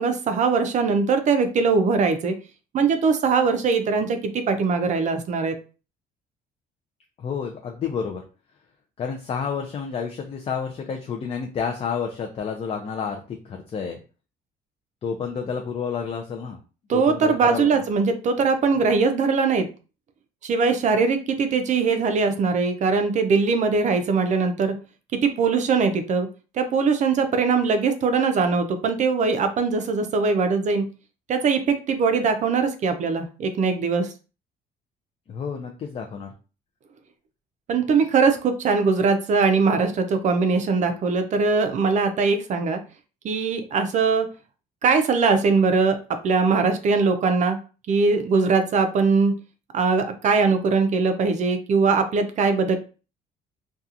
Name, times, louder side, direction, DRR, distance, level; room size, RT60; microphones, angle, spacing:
voice 1, 0.0-2.3 2.7-5.6 16.9-19.7 20.4-24.7 25.2-26.3 26.5-30.8 31.3-34.1 37.7-42.8 43.2-44.3 44.8-46.0 46.2-47.6 47.9-49.3 49.7-52.8, right 4 dB, 45° right, 8 dB, 0.4 m, -21 dB
voice 2, 7.2-8.2 9.0-14.0 15.0-16.6 16.9-17.8 35.3-36.3, left 6 dB, 35° left, 3 dB, 0.4 m, -30 dB
2.7 x 2.3 x 2.4 m, 0.34 s
cardioid pair, 110°, 17 cm